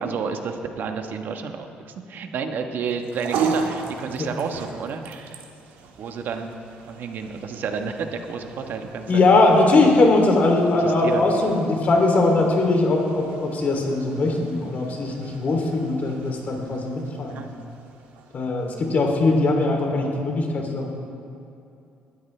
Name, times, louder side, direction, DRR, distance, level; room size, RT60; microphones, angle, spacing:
voice 1, 0.0-5.4 6.0-6.5 6.8-9.2 9.8-10.0 10.8-11.5 17.3-17.5 20.6-20.7, right 5 dB, 65° right, 5 dB, 1.2 m, -31 dB
sound 1, 2.9-19.4, right 5 dB, 90° right, 1.5 m, -36 dB
voice 2, 9.1-17.4 18.3-20.9, left 2 dB, 50° left, 1 dB, 3.0 m, -20 dB
20.5 x 12.5 x 3.3 m, 2.6 s
cardioid pair, 80°, 4 cm